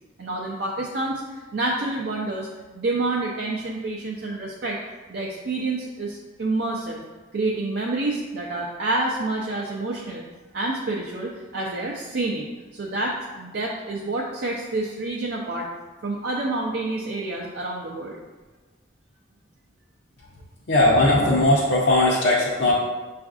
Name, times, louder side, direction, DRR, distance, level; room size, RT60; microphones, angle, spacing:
voice 1, 0.2-2.5 2.7-4.8 5.1-7.0 7.3-10.2 10.5-12.5 12.7-15.7 16.0-18.2, right 2 dB, 60° right, -2 dB, 0.5 m, -28 dB
voice 2, 20.7-22.7, left 1 dB, 60° left, -7 dB, 0.6 m, -18 dB
6.8 x 2.5 x 2.4 m, 1.2 s
head